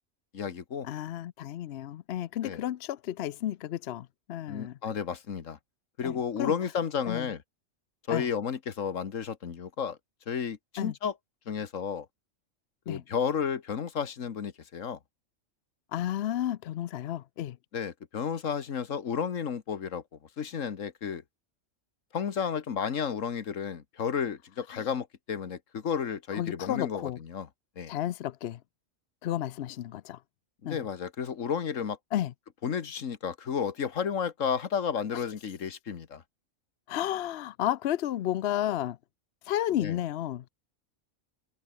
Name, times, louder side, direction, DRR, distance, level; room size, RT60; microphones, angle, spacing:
voice 1, 0.3-0.9 2.4-2.6 4.5-5.6 6.0-7.4 8.1-10.0 10.3-11.1 11.5-12.1 12.9-15.0 17.7-20.0 20.4-21.2 22.1-27.5 27.8-27.9 30.6-32.0 32.6-36.2 39.8-40.0, left 7 dB, 80° left, 1.7 m, -32 dB
voice 2, 0.8-4.8 6.0-6.5 7.1-7.3 8.1-8.3 10.8-10.9 12.9-13.0 15.9-17.6 24.7-24.8 26.3-27.2 27.9-28.6 29.2-30.2 30.7-30.8 32.1-32.3 36.9-39.0 39.5-40.5, left 12 dB, 65° left, 0.8 m, -32 dB
omnidirectional pair, 1.3 m